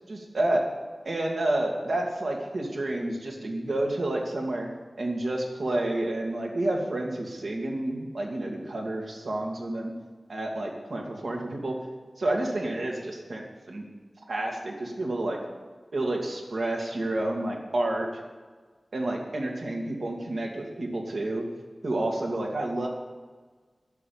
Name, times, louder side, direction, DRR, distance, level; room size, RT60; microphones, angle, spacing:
voice 1, 0.1-0.6 1.0-4.7 5.0-9.9 10.3-11.8 12.2-13.8 14.3-15.4 15.9-18.1 18.9-21.4 21.8-22.9, right 1 dB, 85° right, 0 dB, 2.1 m, -29 dB
10.5 x 7.1 x 9.2 m, 1.4 s
wide cardioid pair, 50°, 0 cm